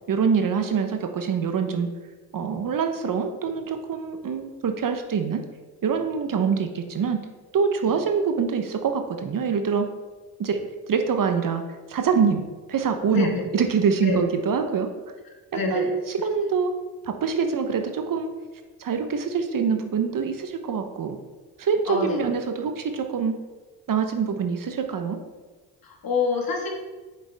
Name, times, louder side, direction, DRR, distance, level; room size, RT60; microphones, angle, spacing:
voice 1, 0.1-1.9 2.3-5.4 5.8-7.2 7.5-9.9 10.4-10.6 10.9-11.6 11.9-14.9 15.7-16.8 17.0-18.3 18.8-21.2 21.6-23.4 23.9-25.2, right 6 dB, 50° right, 6 dB, 1.0 m, -25 dB
voice 2, 13.1-13.4 14.0-14.2 15.5-15.9 21.9-22.3 25.8-26.7, left 4 dB, 55° left, 1 dB, 2.0 m, -26 dB
7.9 x 6.7 x 3.5 m, 1.3 s
supercardioid pair, 55°, 42 cm